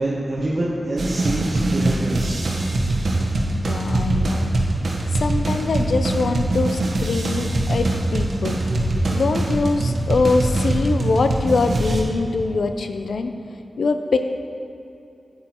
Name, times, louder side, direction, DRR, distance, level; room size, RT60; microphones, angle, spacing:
voice 1, 0.0-2.5, right 1 dB, 55° right, -6 dB, 1.2 m, -25 dB
sound 1, 1.0-12.0, right 2 dB, 75° right, 1.1 m, -22 dB
voice 2, 3.6-4.5 5.1-8.6 9.1-13.3 13.8-14.2, left 4 dB, 85° left, 7 dB, 0.5 m, -23 dB
9.6 x 9.3 x 3.0 m, 2.7 s
cardioid pair, 55°, 0 cm